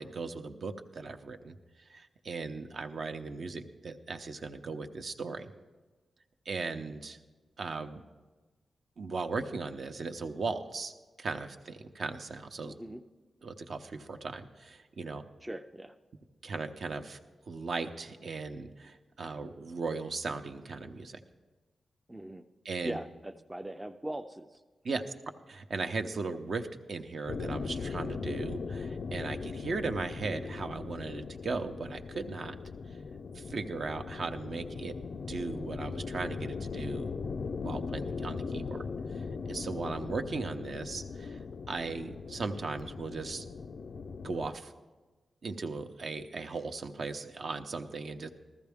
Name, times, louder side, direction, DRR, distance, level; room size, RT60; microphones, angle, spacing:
voice 1, 0.0-1.5 1.9-5.5 6.5-7.2 7.6-8.0 9.0-10.9 11.2-12.7 13.4-15.2 16.4-17.2 17.5-21.2 22.7-23.0 24.8-25.0 25.5-32.5 33.3-34.9 35.3-37.1 37.6-38.8 39.4-41.4 41.7-43.4 44.2-44.7 45.4-48.3, right 4 dB, 60° right, 7 dB, 0.7 m, -37 dB
voice 2, 12.6-13.0 15.4-16.0 22.1-22.4 22.8-24.6, right 1 dB, 10° right, 7 dB, 0.4 m, -41 dB
sound 1, 27.3-44.5, left 4 dB, 60° left, 0.3 m, -39 dB
14.0 x 14.0 x 3.5 m, 1.3 s
wide cardioid pair, 100°, 0 cm